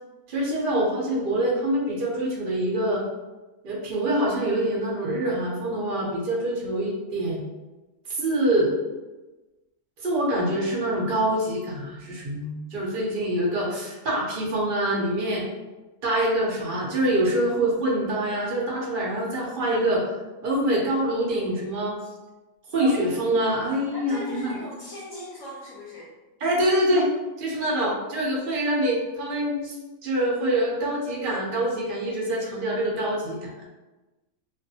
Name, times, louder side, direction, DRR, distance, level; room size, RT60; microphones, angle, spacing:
voice 1, 0.3-3.0 3.6-7.4 8.1-8.7 10.0-15.4 16.0-20.0 20.4-22.0 22.7-24.6 26.4-27.1 27.4-29.7 30.0-33.6, right 1 dB, 55° right, -3 dB, 0.6 m, -25 dB
voice 2, 23.9-26.1, left 2 dB, 65° left, -5 dB, 0.9 m, -39 dB
2.5 x 2.4 x 2.6 m, 1.1 s
omnidirectional pair, 1.6 m